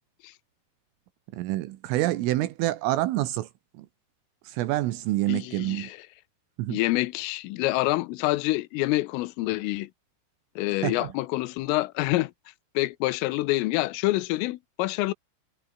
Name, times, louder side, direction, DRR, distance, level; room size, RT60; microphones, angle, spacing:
voice 1, 1.3-3.5 3.8-3.9 4.4-5.9 6.6-6.8 10.8-11.1, right 16 dB, 80° right, 3.8 m, -27 dB
voice 2, 5.3-6.0 6.7-9.9 10.6-12.3 12.8-15.1, left 19 dB, 85° left, 3.5 m, -27 dB
omnidirectional pair, 5.8 m